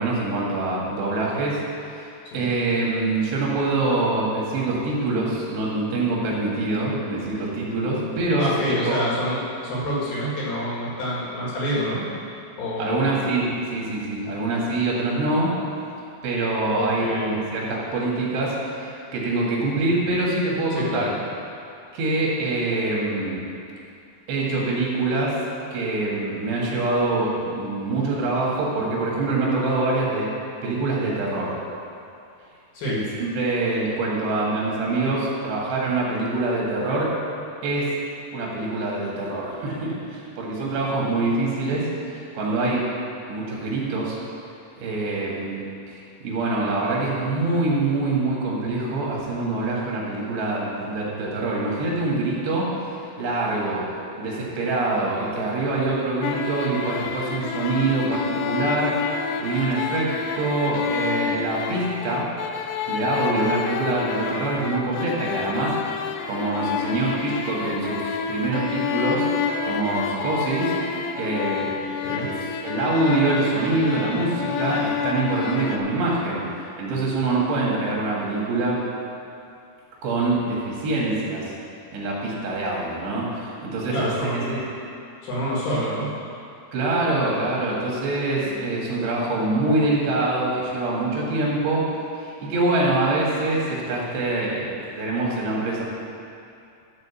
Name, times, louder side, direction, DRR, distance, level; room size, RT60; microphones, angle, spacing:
voice 1, 0.0-1.6 1.9-8.5 8.8-9.0 12.8-13.5 13.7-15.5 16.2-21.1 21.9-23.4 24.3-25.4 25.7-30.3 30.6-31.6 32.9-37.1 37.6-37.9 38.3-42.9 43.3-44.2 44.8-52.7 53.2-53.9 54.2-62.3 62.9-65.8 66.3-69.3 69.6-72.3 72.6-78.9 80.0-81.5 81.9-84.6 86.7-91.9 92.2-95.8, right 2 dB, 85° right, -4 dB, 4.0 m, -25 dB
voice 2, 8.4-12.0 12.6-13.1 16.7-17.4 20.8-21.1 32.7-33.0 72.0-72.3 83.9-84.6 85.2-86.1, equal, 60° left, -6 dB, 3.5 m, -27 dB
sound 1, 56.2-75.8, left 7 dB, 85° left, 2.8 m, -29 dB
12.0 x 4.8 x 7.0 m, 2.6 s
omnidirectional pair, 4.8 m